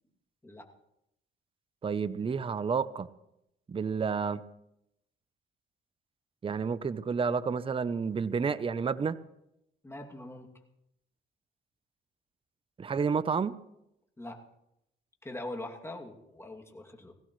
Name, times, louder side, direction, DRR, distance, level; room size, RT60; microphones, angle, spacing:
voice 1, 1.8-3.1 3.7-4.4 6.4-9.2 12.8-13.6, right 5 dB, 25° right, 15 dB, 0.6 m, -30 dB
voice 2, 9.8-10.5 14.2-14.4 15.2-17.1, left 1 dB, 10° left, 1 dB, 2.5 m, -42 dB
20.5 x 16.0 x 3.2 m, 0.81 s
cardioid pair, 90°, 20 cm